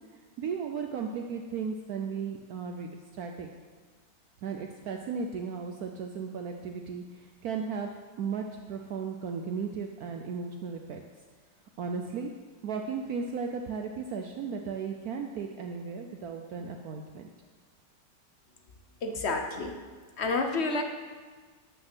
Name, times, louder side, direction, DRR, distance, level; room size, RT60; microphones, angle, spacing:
voice 1, 0.4-3.5 4.4-7.9 8.2-11.0 11.8-12.3 12.6-17.3, right 5 dB, 65° right, 3 dB, 1.1 m, -35 dB
voice 2, 19.0-19.8 20.2-20.8, left 3 dB, 50° left, 4 dB, 0.9 m, -29 dB
12.0 x 5.4 x 6.1 m, 1.5 s
omnidirectional pair, 1.9 m